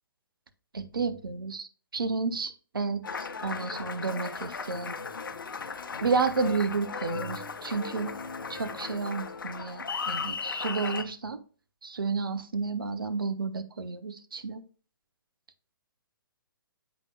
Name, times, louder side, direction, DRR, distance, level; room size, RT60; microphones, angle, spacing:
voice 1, 0.7-5.0 6.0-8.1 8.5-11.4 11.8-14.6, right 4 dB, 70° right, 10 dB, 0.9 m, -31 dB
Applause, 3.0-11.0, left 5 dB, 65° left, 0.8 m, -36 dB
8.2 x 5.2 x 2.3 m, 0.38 s
figure-of-eight pair, 125°, 12 cm